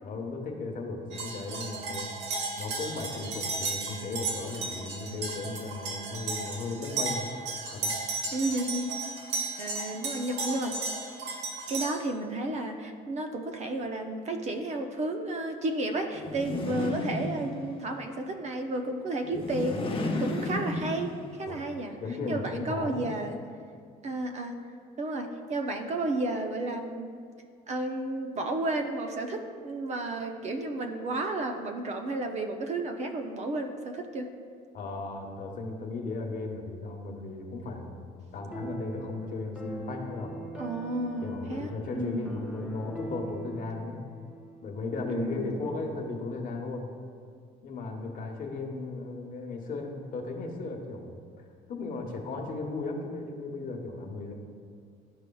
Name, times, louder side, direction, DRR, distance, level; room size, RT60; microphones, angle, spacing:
voice 1, 0.0-2.1 2.6-7.3 7.7-7.9 21.5-21.6 22.0-23.1 34.7-40.3 41.2-44.0 44.6-46.9 47.6-51.2 51.7-54.3, left 3 dB, 55° left, 2 dB, 1.1 m, -36 dB
sound 1, 1.1-11.9, right 3 dB, 85° right, 1.2 m, -34 dB
voice 2, 8.3-8.9 9.6-10.7 11.7-19.8 20.2-22.0 22.3-23.4 24.0-24.5 25.0-27.1 27.7-34.3 40.6-42.3 45.1-45.5, right 2 dB, 40° right, 5 dB, 0.6 m, -32 dB
sound 2, 16.1-17.9 19.2-21.4, left 2 dB, 30° left, 0.9 m, -33 dB
sound 3, 38.3-45.8, right 2 dB, 5° right, 0.8 m, -42 dB
12.0 x 4.7 x 2.3 m, 2.1 s
cardioid pair, 110°, 17 cm